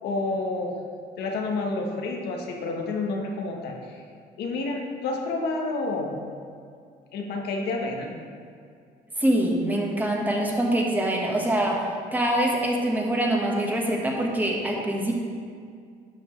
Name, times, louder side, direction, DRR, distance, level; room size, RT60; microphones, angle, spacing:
voice 1, 0.0-0.7 1.2-4.0 4.4-6.2 7.1-8.1, left 3 dB, 75° left, 1 dB, 1.2 m, -29 dB
voice 2, 9.2-11.8 12.1-15.1, right 1 dB, 10° right, -1 dB, 1.3 m, -24 dB
11.5 x 5.9 x 3.2 m, 2.2 s
cardioid pair, 110°, 17 cm